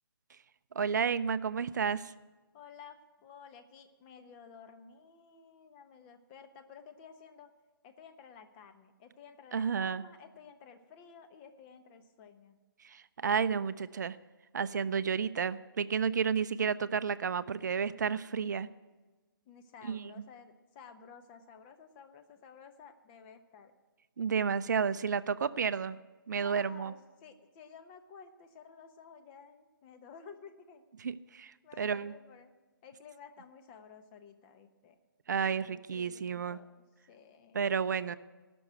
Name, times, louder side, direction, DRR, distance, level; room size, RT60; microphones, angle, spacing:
voice 1, 0.7-2.1 9.5-10.0 12.8-14.2 14.5-18.7 19.8-20.2 24.2-26.0 26.3-26.9 31.0-32.1 35.3-36.6 37.5-38.2, right 6 dB, 55° right, 14 dB, 0.5 m, -31 dB
voice 2, 2.5-7.5 7.8-12.6 19.5-23.7 26.3-30.8 31.6-32.5 32.8-35.0 35.7-36.7 37.1-37.7, left 6 dB, 25° left, 8 dB, 1.0 m, -53 dB
17.0 x 6.2 x 9.1 m, 1.2 s
figure-of-eight pair, 135°, 12 cm